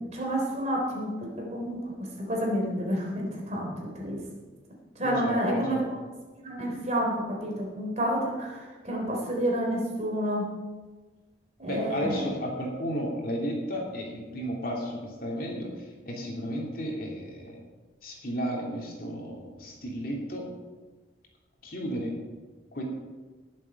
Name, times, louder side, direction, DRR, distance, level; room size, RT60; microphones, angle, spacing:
voice 1, 0.1-1.1 1.4-1.8 2.3-3.7 4.0-4.2 5.0-5.8 6.4-8.6 8.8-10.5 11.6-12.2, equal, 35° right, -1 dB, 3.7 m, -29 dB
voice 2, 5.0-5.8 11.6-17.6 18.0-20.5 21.6-22.1 22.7-22.8, equal, 50° left, -1 dB, 2.8 m, -33 dB
19.5 x 7.6 x 5.4 m, 1.3 s
head